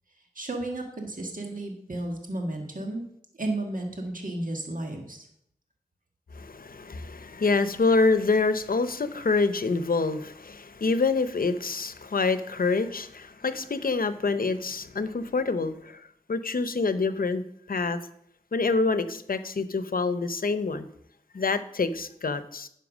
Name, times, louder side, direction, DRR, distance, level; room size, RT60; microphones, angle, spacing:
voice 1, 0.3-3.0 3.4-5.3, right 2 dB, 65° right, 2 dB, 1.7 m, -33 dB
voice 2, 6.3-16.0 16.3-17.4 17.7-18.0 18.5-20.9 21.3-22.7, left 4 dB, 80° left, 12 dB, 0.7 m, -26 dB
10.5 x 5.7 x 6.1 m, 0.72 s
wide cardioid pair, 55°, 15 cm